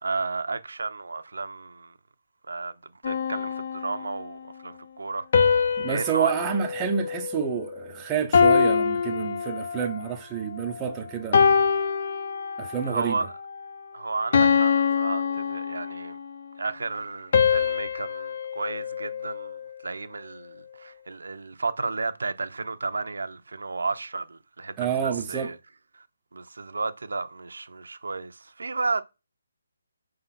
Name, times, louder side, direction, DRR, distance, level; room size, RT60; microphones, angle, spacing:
voice 1, 0.0-1.9 2.5-5.3 5.9-6.3 12.9-13.3 13.9-16.2 16.6-19.6 19.8-25.6 25.9-26.0 26.3-29.0, right 3 dB, 80° right, 0.7 m, -32 dB
sound 1, 3.0-4.4 5.3-7.8 8.3-10.1 10.6-10.9 11.3-12.9 13.4-13.6 14.3-16.2 17.3-19.7, left 6 dB, 40° left, 0.6 m, -24 dB
voice 2, 5.8-11.5 12.6-13.2 24.8-25.5, right 7 dB, 10° right, 0.5 m, -28 dB
4.9 x 3.8 x 5.7 m
hypercardioid pair, 170°, 0 cm